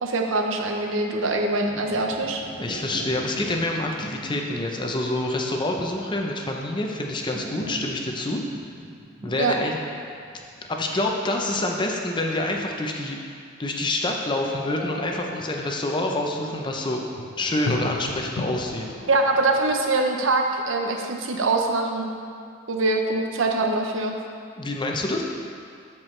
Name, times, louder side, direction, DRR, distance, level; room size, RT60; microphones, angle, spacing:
voice 1, 0.0-2.4 9.4-9.5 19.1-22.1 22.7-24.1, right 2 dB, 70° right, 2 dB, 0.7 m, -23 dB
sound 1, 1.4-11.1, right 1 dB, 55° right, 1.7 m, -41 dB
voice 2, 2.6-8.4 9.2-9.8 10.7-13.2 13.6-17.0 17.4-18.9 24.6-25.2, left 1 dB, 25° left, 1 dB, 0.6 m, -27 dB
sound 2, 14.6-19.8, left 2 dB, 85° left, 0.6 m, -35 dB
13.5 x 4.6 x 3.2 m, 2.3 s
head